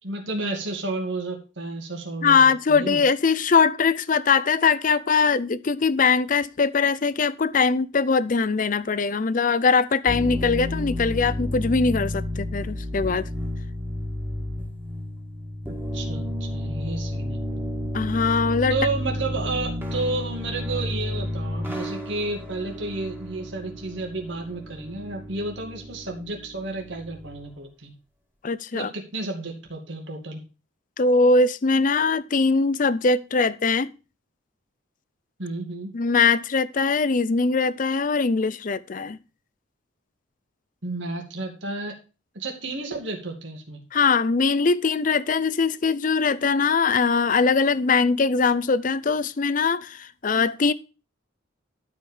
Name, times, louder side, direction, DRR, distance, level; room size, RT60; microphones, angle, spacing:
voice 1, 0.0-2.4 2.7-3.0 15.7-17.6 18.7-27.9 28.7-30.4 35.4-35.9 40.8-42.0 42.3-43.8, right 2 dB, 65° right, 2.4 m, -31 dB
voice 2, 2.2-13.3 17.9-18.7 28.4-28.9 31.0-33.9 35.9-39.2 43.9-50.7, left 4 dB, 40° left, 0.5 m, -21 dB
sound 1, 10.1-27.5, left 1 dB, 10° right, 1.9 m, -31 dB
12.0 x 5.1 x 5.4 m
head